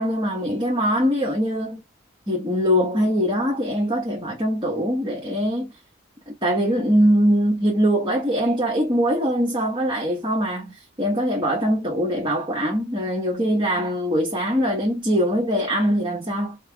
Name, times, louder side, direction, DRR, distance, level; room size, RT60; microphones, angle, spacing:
voice 1, 0.0-1.8 2.3-5.7 6.3-16.6, equal, 25° right, 1.2 m, -22 dB
5.6 x 2.0 x 3.4 m
head